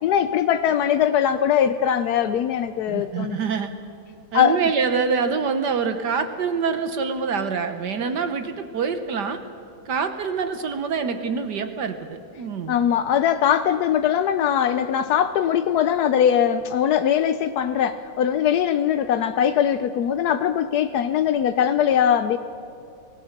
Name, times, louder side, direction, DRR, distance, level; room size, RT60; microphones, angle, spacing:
voice 1, 0.0-3.4 4.3-4.6 12.7-22.4, left 9 dB, 75° left, 10 dB, 0.9 m, -21 dB
voice 2, 2.9-3.7 4.3-9.4 9.9-12.7, right 5 dB, 60° right, 8 dB, 1.4 m, -25 dB
25.5 x 18.5 x 6.6 m, 2.6 s
omnidirectional pair, 2.4 m